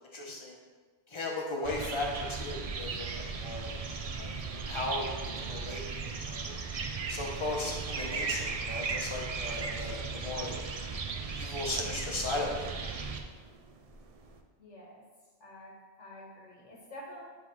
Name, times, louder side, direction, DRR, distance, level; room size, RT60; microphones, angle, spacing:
voice 1, 0.1-0.6 1.1-3.8 4.2-4.3 4.6-5.8 6.2-6.4 7.1-10.6 11.3-12.7, left 2 dB, 25° left, -1 dB, 1.1 m, -36 dB
sound 1, 1.6-14.4, right 4 dB, 45° right, 0.5 m, -37 dB
voice 2, 14.6-15.0 15.4-15.7 16.0-17.2, left 1 dB, 90° left, -4 dB, 1.7 m, -48 dB
9.4 x 3.8 x 4.7 m, 1.5 s
omnidirectional pair, 1.2 m